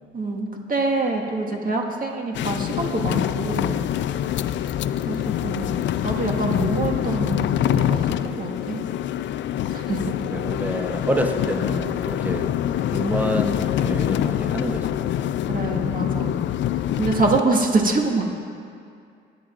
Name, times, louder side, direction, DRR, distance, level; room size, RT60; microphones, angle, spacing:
voice 1, 0.1-3.8 5.1-5.7 6.0-8.8 9.7-10.0 15.5-16.4 17.0-18.2, right 3 dB, 45° right, 1 dB, 1.7 m, -25 dB
sound 1, 2.3-17.4, left 11 dB, 70° left, 0.4 m, -25 dB
voice 2, 10.3-12.5 12.9-15.0, right 1 dB, 10° right, 4 dB, 0.9 m, -27 dB
21.0 x 9.9 x 2.5 m, 2.3 s
cardioid pair, 90°, 20 cm